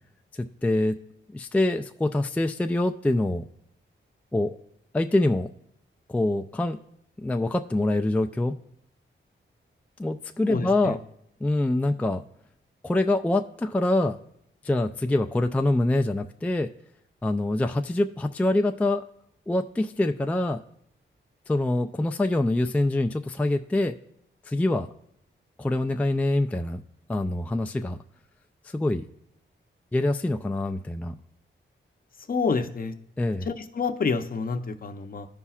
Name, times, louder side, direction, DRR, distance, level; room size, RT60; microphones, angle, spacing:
voice 1, 0.3-1.0 1.3-3.4 4.3-4.6 4.9-5.5 6.1-6.8 7.2-8.5 10.0-11.0 11.4-12.2 12.8-14.2 14.6-16.7 17.2-19.0 19.5-20.6 21.5-23.9 24.5-24.9 25.6-26.8 27.1-28.0 28.6-29.0 29.9-31.1 33.2-33.5, left 2 dB, 5° left, 6 dB, 0.3 m, -25 dB
voice 2, 10.5-11.0 32.3-33.0 33.4-35.3, left 4 dB, 45° left, 7 dB, 0.7 m, -28 dB
14.5 x 5.6 x 2.4 m, 0.74 s
wide cardioid pair, 135°, 21 cm